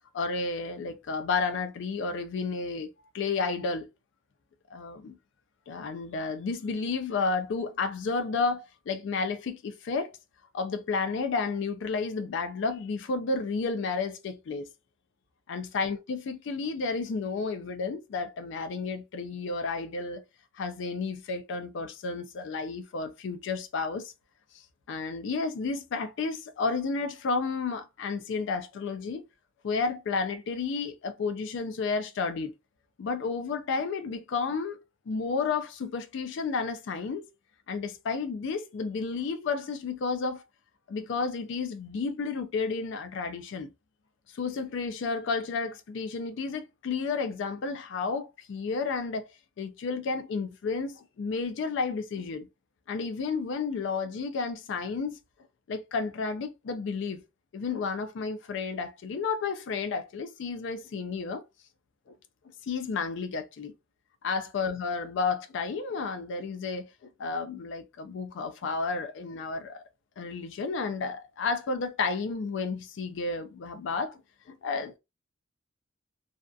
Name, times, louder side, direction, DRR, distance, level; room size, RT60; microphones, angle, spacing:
voice 1, 0.1-2.9 3.1-3.9 4.7-5.2 5.7-10.2 10.5-14.7 15.5-20.2 20.5-24.1 24.9-29.2 29.6-32.5 33.0-34.8 35.1-37.3 37.7-40.4 40.9-43.7 44.3-49.3 49.6-52.5 52.9-55.2 55.7-57.2 57.5-61.4 62.1-62.2 62.6-63.7 64.2-69.8 70.2-74.2 74.5-75.0, left 4 dB, 65° left, 0.4 m, -31 dB
2.6 x 2.3 x 2.3 m
head